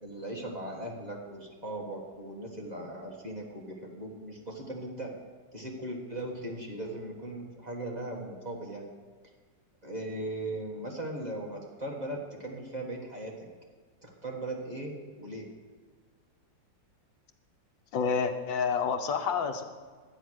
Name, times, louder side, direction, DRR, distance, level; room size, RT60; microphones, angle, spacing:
voice 1, 0.0-5.1 5.5-8.9 9.8-13.5 14.0-15.5, right 1 dB, 25° right, -1 dB, 1.5 m, -38 dB
voice 2, 17.9-19.6, left 5 dB, 80° left, 6 dB, 1.6 m, -28 dB
12.0 x 9.1 x 6.3 m, 1.5 s
omnidirectional pair, 2.0 m